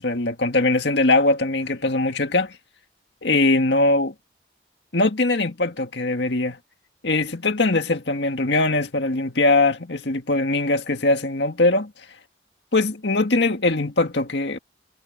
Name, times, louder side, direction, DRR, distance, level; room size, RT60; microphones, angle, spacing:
voice 1, 0.0-2.5 3.2-4.1 4.9-6.6 7.0-11.9 12.7-14.6, left 2 dB, 70° left, 1.9 m, -21 dB
head